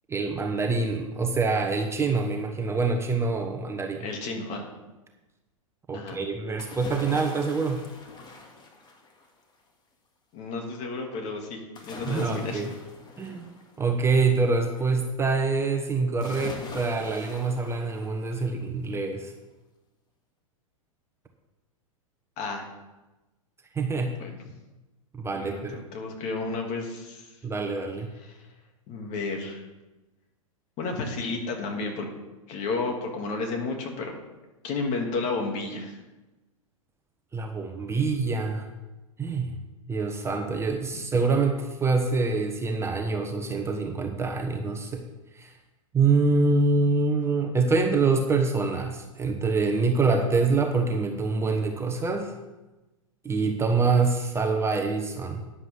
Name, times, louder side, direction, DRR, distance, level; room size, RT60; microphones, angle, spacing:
voice 1, 0.1-4.1 5.9-7.8 12.1-12.7 13.2-13.5 13.8-19.3 23.7-24.1 25.1-25.8 27.4-28.1 37.3-38.7 39.2-39.6 39.9-45.0 45.3-45.5 45.9-52.3 53.2-55.4, right 4 dB, 15° right, 4 dB, 1.1 m, -25 dB
voice 2, 4.0-4.6 5.9-6.2 10.3-12.6 22.4-22.7 24.2-24.4 25.3-27.3 28.2-28.4 28.9-29.7 30.8-32.1 32.5-34.2 34.6-36.0 40.9-41.0, left 3 dB, 40° left, 2 dB, 2.8 m, -32 dB
sound 1, 6.6-9.4 11.7-14.4 16.2-18.5 18.9-19.0, left 3 dB, 25° left, 2.0 m, -43 dB
13.0 x 9.8 x 3.8 m, 1.1 s
hypercardioid pair, 100°, 18 cm